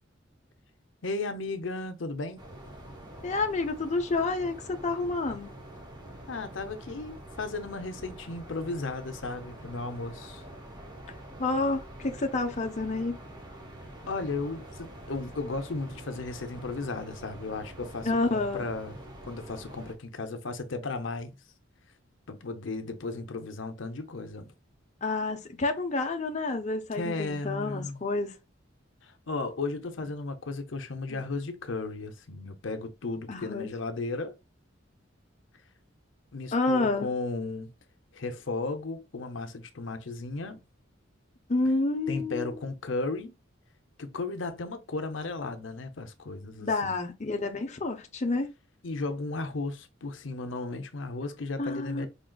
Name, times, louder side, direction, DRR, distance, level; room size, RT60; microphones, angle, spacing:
voice 1, 1.0-2.4 6.3-10.4 14.1-21.3 22.3-24.5 27.0-28.0 29.0-34.4 36.3-37.7 38.1-40.6 42.1-43.3 44.0-46.9 48.8-52.1, left 3 dB, 70° left, 0.7 m, -35 dB
sound 1, 2.4-20.0, right 1 dB, 20° right, 1.3 m, -46 dB
voice 2, 3.2-5.5 11.4-13.2 18.0-18.7 25.0-28.4 33.3-33.7 36.5-37.1 41.5-42.6 46.6-48.5 51.6-52.1, left 3 dB, 35° left, 0.7 m, -29 dB
5.3 x 3.8 x 2.3 m
head